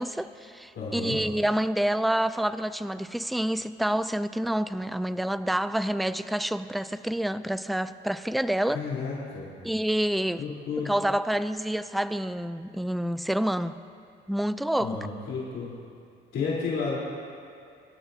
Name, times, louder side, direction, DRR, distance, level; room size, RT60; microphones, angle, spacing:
voice 1, 0.0-8.8 9.6-10.4 10.9-13.8 14.3-15.0, right 1 dB, ahead, 13 dB, 0.3 m, -28 dB
voice 2, 0.8-1.2 8.7-9.5 10.4-10.9 14.8-15.7 16.3-17.0, left 5 dB, 70° left, -6 dB, 3.7 m, -31 dB
24.5 x 12.0 x 2.7 m, 2.4 s
cardioid pair, 90°, 20 cm